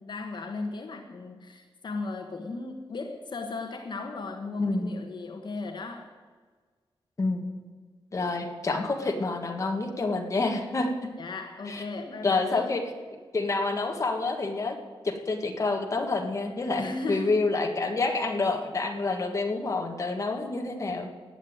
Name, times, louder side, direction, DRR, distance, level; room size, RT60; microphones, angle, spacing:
voice 1, 0.0-6.1 11.2-12.8 16.8-17.4, left 3 dB, 55° left, 4 dB, 1.2 m, -36 dB
voice 2, 4.6-4.9 7.2-7.5 8.1-10.9 11.7-11.8 12.2-12.8 13.3-14.7 15.0-21.1, left 3 dB, 35° left, 3 dB, 1.4 m, -28 dB
16.5 x 8.0 x 9.3 m, 1.5 s
wide cardioid pair, 180°, 9 cm